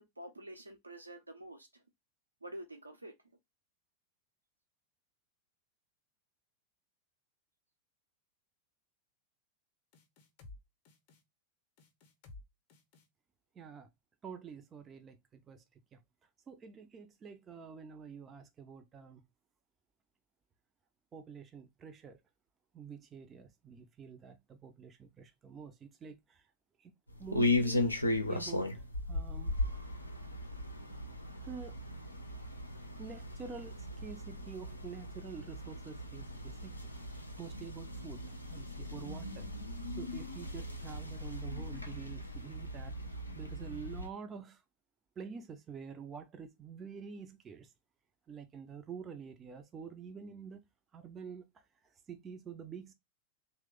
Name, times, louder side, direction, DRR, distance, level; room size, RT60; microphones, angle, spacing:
voice 1, 0.0-1.7 2.4-3.1, right 1 dB, 80° right, 0.7 m, -48 dB
sound 1, 9.9-10.6 10.8-11.2 11.8-12.4 12.7-13.1, left 3 dB, 45° left, 0.7 m, -53 dB
voice 2, 13.6-13.9 14.2-15.6 15.9-16.0 16.5-19.2 21.1-22.2 22.7-26.4 26.8-26.9 27.2-28.0 28.3-28.8 29.1-29.6 31.4-31.8 33.0-39.5 40.0-42.9 43.3-44.6 45.2-47.7 48.3-50.6 50.9-51.6 52.1-52.9, right 6 dB, 25° right, 0.5 m, -48 dB
sound 2, 27.1-44.1, left 2 dB, 85° left, 0.5 m, -37 dB
3.0 x 2.1 x 3.5 m
figure-of-eight pair, 90°, 0 cm